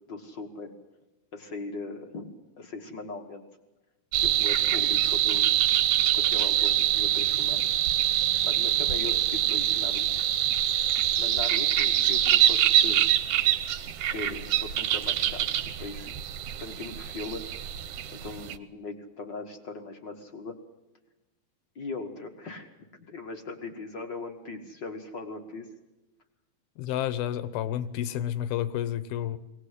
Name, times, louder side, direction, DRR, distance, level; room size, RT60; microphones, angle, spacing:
voice 1, 0.1-0.7 1.3-3.4 4.2-5.5 6.1-7.8 8.4-10.3 11.2-13.1 14.1-16.1 16.6-17.5 18.1-20.5 21.7-22.7 23.1-25.7, left 3 dB, 50° left, 4 dB, 1.3 m, -39 dB
sound 1, 4.1-18.6, right 12 dB, 70° right, 2.1 m, -25 dB
voice 2, 26.8-29.4, left 11 dB, 80° left, 14 dB, 2.8 m, -30 dB
22.0 x 18.5 x 8.2 m, 1.0 s
omnidirectional pair, 4.3 m